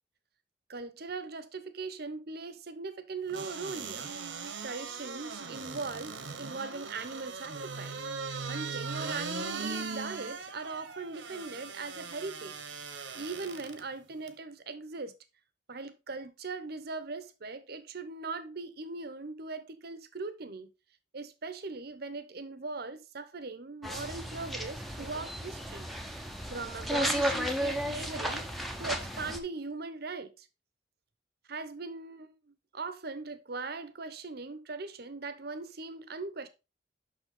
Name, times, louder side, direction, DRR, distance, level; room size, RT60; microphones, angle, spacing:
voice 1, 0.7-4.1 4.6-8.0 8.4-12.6 13.1-15.1 15.7-20.7 21.1-28.4 28.8-30.5 31.5-36.5, right 3 dB, 60° right, 0.9 m, -40 dB
sound 1, 3.3-13.8 14.3-14.4, right 4 dB, 85° right, 1.2 m, -39 dB
sound 2, 23.8-29.4, equal, ahead, 0.8 m, -34 dB
6.6 x 5.9 x 3.7 m
head